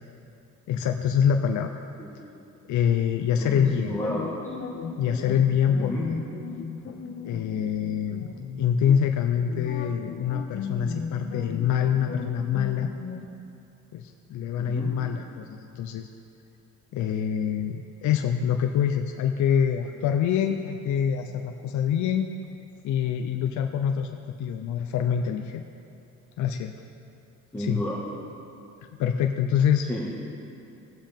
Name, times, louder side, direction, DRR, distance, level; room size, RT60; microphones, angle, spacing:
voice 1, 0.7-1.8 2.7-4.0 5.0-6.2 7.2-8.3 8.6-12.9 13.9-16.1 16.9-22.3 22.8-24.1 24.4-25.6 26.4-26.7 27.6-27.8 29.0-29.9, left 8 dB, 75° left, 5 dB, 0.6 m, -25 dB
voice 2, 2.0-2.4 3.4-4.5 5.7-6.1 14.6-14.9 27.5-28.0 29.9-30.1, left 1 dB, 10° left, -7 dB, 1.7 m, -32 dB
sound 1, 3.5-13.3, left 5 dB, 40° left, 0.9 m, -36 dB
17.5 x 7.4 x 3.6 m, 2.7 s
cardioid pair, 90°, 30 cm